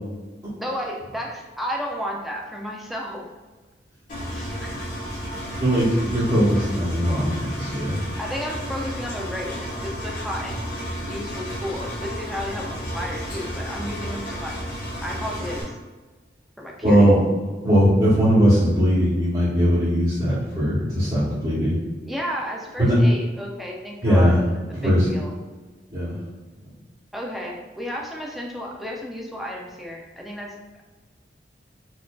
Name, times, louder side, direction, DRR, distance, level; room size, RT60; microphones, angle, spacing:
voice 1, 0.6-3.3 4.3-4.8 8.2-10.6 11.0-14.6 15.0-15.7 16.6-17.0 22.1-24.4 24.8-25.3 27.1-30.5, equal, ahead, -1 dB, 0.3 m, -32 dB
Engine, 4.1-15.6, equal, 45° left, 1.5 m, -32 dB
voice 2, 5.6-8.0 16.8-17.2 17.6-21.8 22.8-22.9 24.0-24.4 24.7-25.1 25.9-26.2, equal, 30° right, -11 dB, 0.9 m, -19 dB
4.3 x 2.6 x 2.2 m, 1.3 s
head